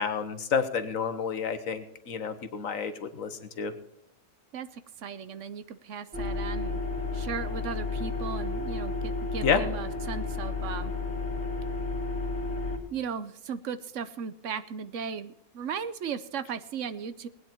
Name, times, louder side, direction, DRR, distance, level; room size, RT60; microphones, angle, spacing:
voice 1, 0.0-3.7 9.4-9.6, left 6 dB, 75° left, 10 dB, 1.5 m, -29 dB
voice 2, 4.5-6.8 7.1-10.9 12.9-17.3, right 6 dB, 70° right, 13 dB, 1.1 m, -36 dB
sound 1, 6.1-12.8, left 3 dB, 50° left, 2.7 m, -32 dB
19.5 x 9.5 x 4.4 m, 0.77 s
omnidirectional pair, 1.4 m